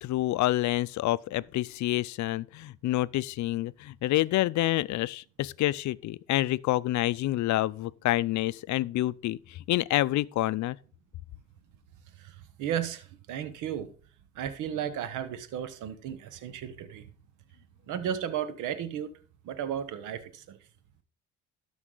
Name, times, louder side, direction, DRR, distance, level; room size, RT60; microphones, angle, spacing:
voice 1, 0.0-10.8, left 16 dB, 70° left, 0.5 m, -28 dB
voice 2, 12.2-13.9 14.3-17.1 17.9-19.1 19.4-20.6, right 9 dB, 90° right, 0.9 m, -34 dB
12.5 x 5.4 x 3.8 m
cardioid pair, 90°, 30 cm